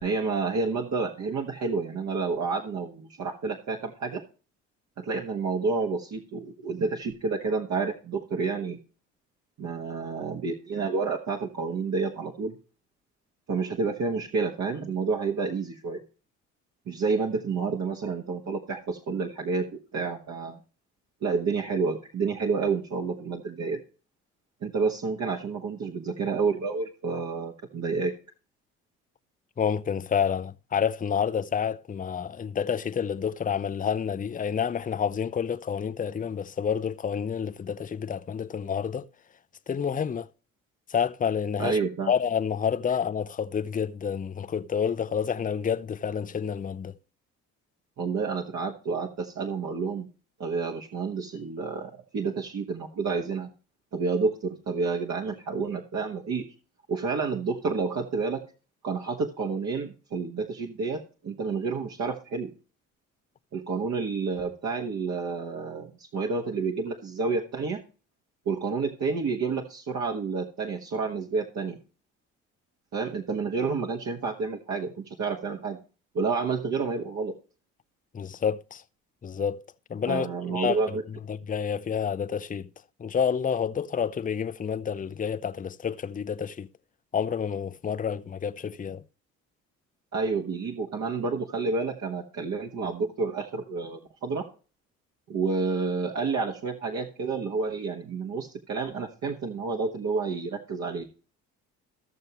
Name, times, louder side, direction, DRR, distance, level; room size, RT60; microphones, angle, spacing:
voice 1, 0.0-4.2 5.0-8.8 9.6-12.5 13.5-16.0 16.9-20.6 21.2-23.8 24.6-28.1 41.6-42.1 48.0-50.1 50.4-53.5 53.9-56.4 56.9-58.4 58.8-62.5 63.5-67.8 68.4-71.8 72.9-75.8 76.1-77.3 80.1-81.0 90.1-94.4 95.3-101.1, right 4 dB, 50° right, 1.5 m, -29 dB
voice 2, 29.6-39.1 39.7-40.3 40.9-41.8 42.1-46.9 78.1-78.8 79.2-79.6 79.9-80.8 81.3-82.7 83.0-86.7 87.1-89.0, left 7 dB, 25° left, 0.7 m, -29 dB
15.0 x 6.7 x 3.0 m
hypercardioid pair, 55°, 36 cm